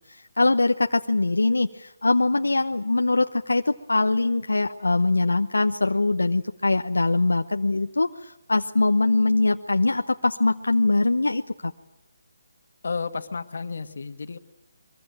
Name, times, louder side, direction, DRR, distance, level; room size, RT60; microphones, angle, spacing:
voice 1, 0.1-11.7, left 2 dB, 85° left, 6 dB, 0.9 m, -22 dB
voice 2, 12.8-14.4, left 4 dB, 65° left, 9 dB, 1.9 m, -32 dB
24.0 x 21.5 x 8.9 m, 0.85 s
figure-of-eight pair, 150°, 0 cm